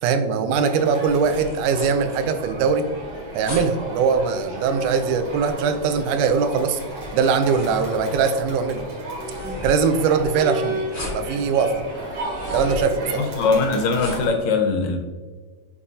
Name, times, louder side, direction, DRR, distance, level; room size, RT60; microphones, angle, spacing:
voice 1, 0.0-2.9 3.4-6.8 7.1-8.8 9.6-11.8 12.5-13.3, right 5 dB, 80° right, 9 dB, 2.0 m, -21 dB
Crowd, 0.5-14.3, right 1 dB, 55° right, 3.1 m, -33 dB
sound 1, 1.1-14.4, left 2 dB, 15° left, 1.0 m, -39 dB
voice 2, 13.2-15.0, left 4 dB, 75° left, 4 dB, 1.8 m, -21 dB
8.4 x 4.7 x 2.7 m, 1.4 s
omnidirectional pair, 3.6 m